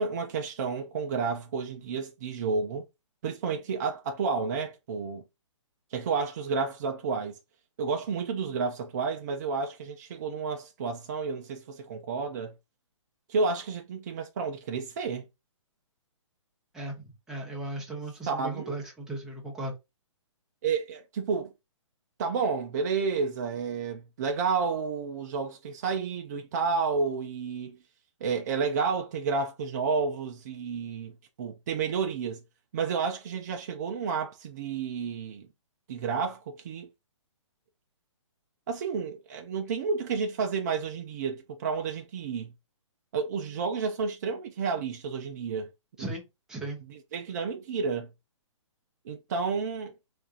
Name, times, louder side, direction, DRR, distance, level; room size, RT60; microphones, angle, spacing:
voice 1, 0.0-2.8 3.2-5.2 5.9-7.4 7.8-12.5 13.3-15.2 18.3-18.8 20.6-21.5 22.2-27.8 28.2-31.1 31.4-32.4 32.7-35.5 35.9-36.9 38.7-42.5 43.1-45.7 46.0-46.1 46.9-48.1 49.0-49.9, right 5 dB, 35° right, 0.5 m, -31 dB
voice 2, 16.7-19.7 46.0-46.8, right 2 dB, 5° right, 0.8 m, -37 dB
4.2 x 2.5 x 2.5 m
hypercardioid pair, 160°, 16 cm